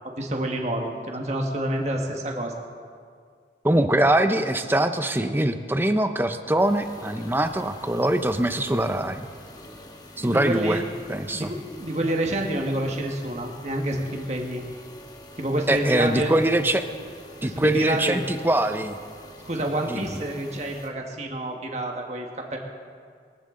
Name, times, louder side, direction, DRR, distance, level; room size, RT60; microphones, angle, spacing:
voice 1, 0.2-2.5 10.2-10.8 11.3-14.6 15.4-16.3 17.4-18.2 19.4-22.6, right 1 dB, 40° right, 1 dB, 1.5 m, -28 dB
voice 2, 3.6-9.3 10.2-10.8 11.1-11.5 15.7-16.8 17.4-18.9 19.9-20.0, right 1 dB, 10° right, 8 dB, 0.6 m, -23 dB
sound 1, 6.6-20.9, left 1 dB, 20° left, 1.3 m, -46 dB
22.0 x 15.0 x 3.8 m, 2.1 s
head